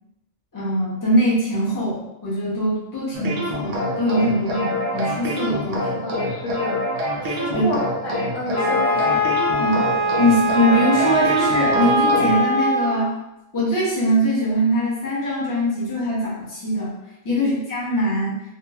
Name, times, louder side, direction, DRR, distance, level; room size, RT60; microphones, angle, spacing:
voice 1, 0.5-6.0 7.2-7.7 9.6-9.8 10.2-13.1 13.5-17.0 17.2-18.4, equal, 20° left, -8 dB, 0.7 m, -22 dB
sound 1, 3.1-12.4, equal, 70° right, 0.3 m, -26 dB
voice 2, 6.0-6.9 7.4-9.3 17.3-17.5, left 1 dB, 85° left, -1 dB, 1.0 m, -30 dB
Wind instrument woodwind instrument, 8.6-13.1, right 1 dB, 50° left, 1.3 m, -21 dB
2.9 x 2.5 x 2.3 m, 0.91 s
omnidirectional pair, 1.4 m